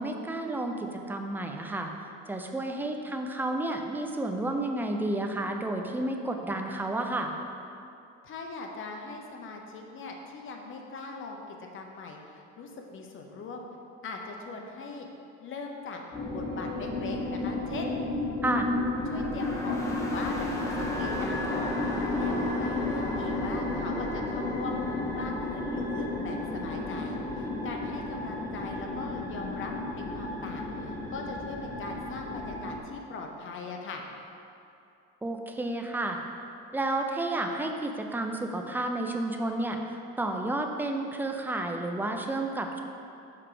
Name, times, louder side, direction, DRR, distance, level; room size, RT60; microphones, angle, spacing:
voice 1, 0.0-1.9 2.3-7.3 18.4-18.7 35.2-36.2 36.7-42.8, right 2 dB, 5° right, 3 dB, 0.4 m, -31 dB
voice 2, 8.2-13.7 14.0-15.1 15.4-16.0 16.3-18.0 19.1-24.8 25.1-34.0, left 3 dB, 40° left, 2 dB, 0.8 m, -40 dB
sound 1, 16.1-32.8, left 2 dB, 10° left, 0.8 m, -32 dB
6.0 x 4.4 x 4.9 m, 2.6 s
cardioid pair, 130°, 32 cm